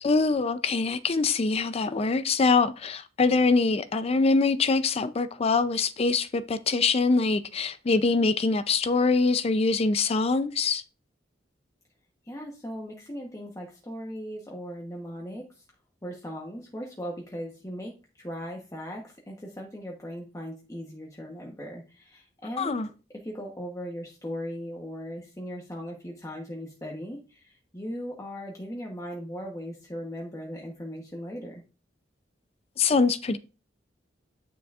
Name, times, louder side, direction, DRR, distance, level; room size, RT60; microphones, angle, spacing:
voice 1, 0.0-10.8 22.6-22.9 32.8-33.4, left 4 dB, 35° left, 0.4 m, -24 dB
voice 2, 12.2-15.6 16.0-22.8 23.2-31.6, equal, 15° left, 1.0 m, -38 dB
9.5 x 5.9 x 2.4 m
head